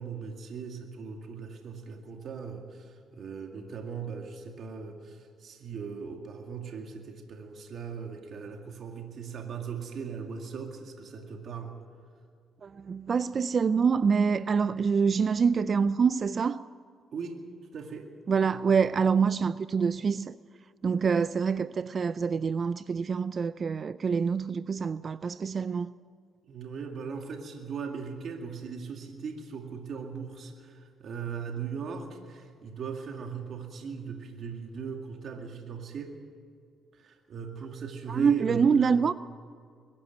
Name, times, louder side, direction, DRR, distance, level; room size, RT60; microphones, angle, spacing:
voice 1, 0.0-11.7 17.1-17.4 17.7-18.1 26.5-36.1 37.0-38.9, right 6 dB, 60° right, 2.2 m, -39 dB
voice 2, 12.6-16.7 18.3-20.4 20.8-25.9 38.1-39.1, right 6 dB, 45° right, 0.4 m, -26 dB
22.0 x 13.0 x 9.3 m
cardioid pair, 90°, 0 cm